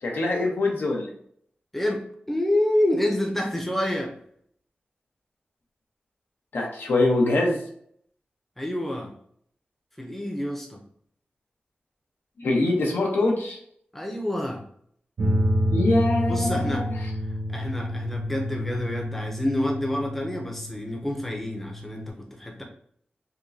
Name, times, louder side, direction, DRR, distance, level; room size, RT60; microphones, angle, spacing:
voice 1, 0.0-1.1 6.5-7.6 12.4-13.6 15.7-16.8, left 2 dB, 80° left, -1 dB, 0.9 m, -23 dB
voice 2, 1.7-4.1 8.6-9.1 10.0-10.8 13.9-14.6 16.3-16.9 17.5-22.6, left 1 dB, 5° left, 1 dB, 0.6 m, -28 dB
sound 1, 15.2-22.1, equal, 75° right, 0.9 m, -28 dB
5.0 x 2.1 x 2.7 m, 0.64 s
wide cardioid pair, 125°, 4 cm